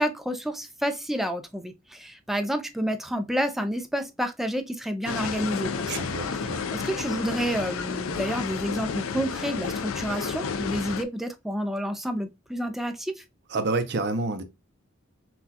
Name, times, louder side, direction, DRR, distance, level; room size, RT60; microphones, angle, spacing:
voice 1, 0.0-6.1 6.3-13.2, equal, ahead, 0.4 m, -29 dB
sound 1, 5.0-11.0, left 5 dB, 80° left, 0.4 m, -31 dB
voice 2, 5.9-6.7 13.5-14.4, right 3 dB, 55° right, 0.6 m, -28 dB
5.9 x 2.3 x 2.8 m
head